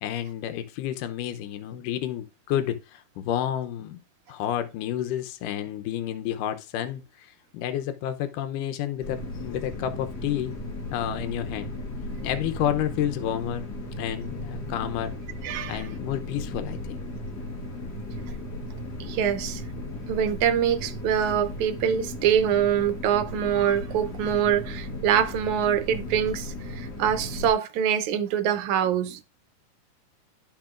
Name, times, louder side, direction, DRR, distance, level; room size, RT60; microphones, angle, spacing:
voice 1, 0.0-4.0 4.3-10.5 10.9-11.7 12.2-13.7 14.0-15.1 15.7-17.0, left 11 dB, 80° left, 2.4 m, -30 dB
sound 1, 9.0-27.5, left 1 dB, 60° left, 1.0 m, -36 dB
voice 2, 15.4-15.8 19.0-19.6 20.1-29.2, right 9 dB, 75° right, 1.9 m, -24 dB
12.0 x 5.9 x 2.5 m
omnidirectional pair, 3.7 m